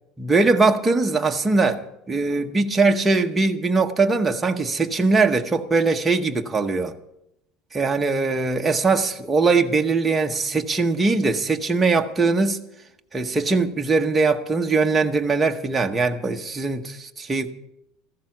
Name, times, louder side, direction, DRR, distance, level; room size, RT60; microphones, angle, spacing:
voice 1, 0.2-6.9 7.7-12.6 13.1-17.5, right 3 dB, 10° right, 0.8 m, -21 dB
14.5 x 12.0 x 5.9 m
cardioid pair, 165°, 0 cm